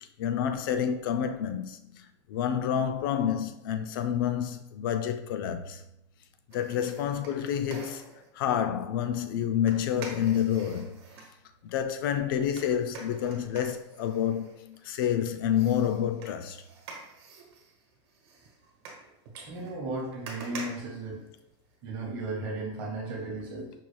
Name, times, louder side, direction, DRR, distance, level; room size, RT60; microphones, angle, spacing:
voice 1, 0.2-5.8 6.5-8.0 8.3-11.0 11.6-16.6 23.3-23.4, left 9 dB, 50° left, 0.4 m, -29 dB
sound 1, 6.5-8.3 9.7-11.3 12.6-15.1 15.5-21.8 22.1-22.2, right 4 dB, 60° right, 1.1 m, -46 dB
voice 2, 19.4-21.3 21.8-23.7, right 2 dB, 35° right, 0.8 m, -35 dB
5.5 x 2.3 x 3.2 m
supercardioid pair, 175°, 15 cm